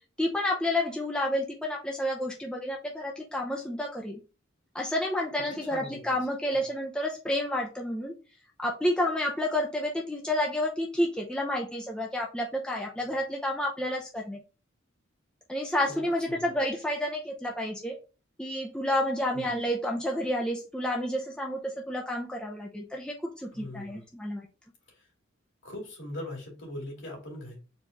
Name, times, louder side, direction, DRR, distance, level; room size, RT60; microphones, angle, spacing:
voice 1, 0.2-4.2 4.7-8.1 8.6-14.4 15.5-18.0 18.4-24.5, left 1 dB, 5° left, 0.6 m, -30 dB
voice 2, 5.5-6.1 16.3-16.5 19.3-19.4 23.5-24.1 25.6-27.6, left 1 dB, 60° left, 2.4 m, -40 dB
4.5 x 3.0 x 3.8 m
head